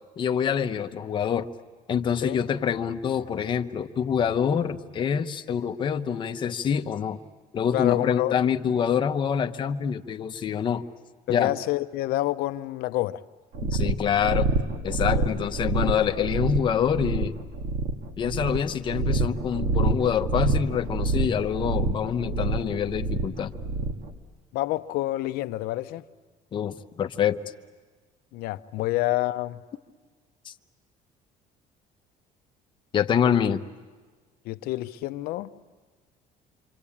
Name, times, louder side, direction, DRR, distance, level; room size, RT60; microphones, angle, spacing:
voice 1, 0.2-1.5 1.9-7.2 7.5-10.8 11.3-11.5 13.6-14.5 14.8-17.4 18.2-23.5 26.5-27.4 30.4-30.5 32.9-33.6, left 8 dB, 30° left, 0.8 m, -26 dB
voice 2, 7.7-8.3 11.3-13.2 15.2-15.3 24.5-26.0 28.3-29.6 34.5-35.5, left 16 dB, 75° left, 0.8 m, -28 dB
sound 1, 13.5-24.1, right 2 dB, 60° right, 2.1 m, -27 dB
27.5 x 25.0 x 8.6 m
cardioid pair, 170°, 16 cm